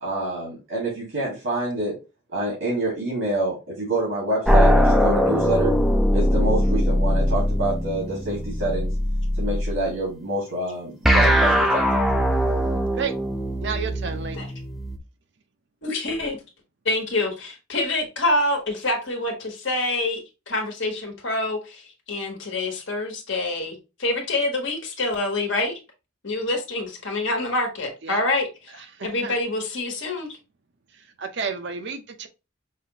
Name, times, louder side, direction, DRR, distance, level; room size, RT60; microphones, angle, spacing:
voice 1, 0.0-2.0 2.3-5.7 6.1-8.9 9.4-12.0, right 1 dB, 80° right, 2.0 m, -27 dB
sound 1, 4.5-9.8 11.0-15.0, equal, ahead, 0.4 m, -21 dB
voice 2, 13.6-14.4 28.0-28.2 28.9-29.3 30.9-32.3, right 5 dB, 55° right, 0.5 m, -31 dB
voice 3, 15.8-16.4 16.8-25.7 26.2-28.5 29.0-30.3, left 2 dB, 65° left, 1.3 m, -26 dB
5.5 x 2.5 x 2.9 m
head